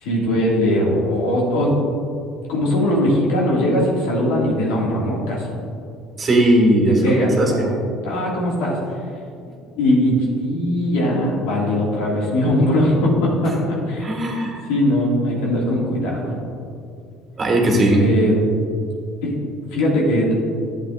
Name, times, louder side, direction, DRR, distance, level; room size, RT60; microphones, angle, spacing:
voice 1, 0.0-1.8 2.5-5.5 6.9-7.7 8.0-8.8 9.8-14.1 14.7-16.4 17.6-18.4 19.2-19.3 19.7-20.3, left 1 dB, 85° left, -3 dB, 2.1 m, -20 dB
voice 2, 6.2-7.7 14.0-14.6 17.4-18.0, right 1 dB, 30° right, 0 dB, 1.7 m, -18 dB
11.0 x 7.5 x 2.5 m, 2.4 s
supercardioid pair, 100°, 0 cm